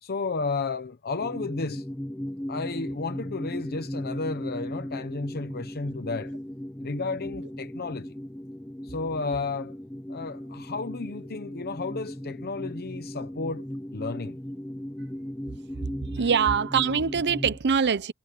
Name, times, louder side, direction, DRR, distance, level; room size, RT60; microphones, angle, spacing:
voice 1, 0.0-1.9 2.5-6.3 6.8-8.1 8.8-9.8 10.1-13.7 13.9-14.4 16.2-16.3, left 3 dB, 45° left, 0.9 m, -32 dB
Almost Human Drone Loop, 1.2-17.6, equal, 5° left, 0.7 m, -37 dB
voice 2, 16.1-18.1, right 6 dB, 50° right, 0.7 m, -23 dB
head